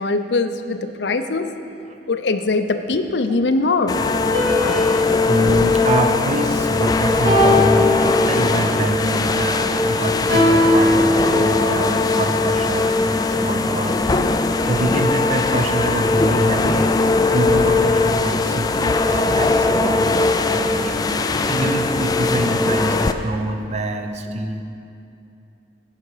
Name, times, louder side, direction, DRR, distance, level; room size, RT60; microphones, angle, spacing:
voice 1, 0.0-1.5 2.1-4.0 11.3-11.5, left 3 dB, 70° left, 8 dB, 0.6 m, -21 dB
sound 1, 3.9-23.1, left 3 dB, 20° left, 0.3 m, -19 dB
sound 2, 4.3-6.7 7.3-8.7 10.3-11.8, left 1 dB, 60° right, 2.9 m, -20 dB
voice 2, 5.3-14.3 14.6-21.1 21.4-24.6, right 1 dB, 40° right, 6 dB, 0.7 m, -25 dB
16.0 x 5.7 x 4.9 m, 2.6 s
head